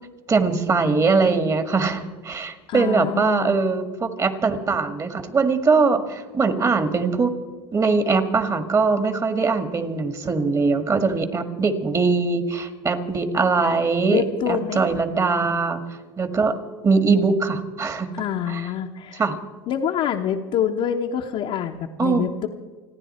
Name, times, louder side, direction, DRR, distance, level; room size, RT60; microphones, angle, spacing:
voice 1, 0.3-7.3 7.7-15.8 16.2-16.6 16.8-18.1 18.5-18.7 19.2-19.4 22.0-22.3, right 4 dB, 25° right, 9 dB, 1.9 m, -21 dB
voice 2, 2.7-3.6 14.1-14.8 18.1-19.2 19.7-22.5, left 8 dB, 55° left, 1 dB, 1.2 m, -26 dB
29.5 x 10.0 x 4.4 m, 1.3 s
hypercardioid pair, 90°, 13 cm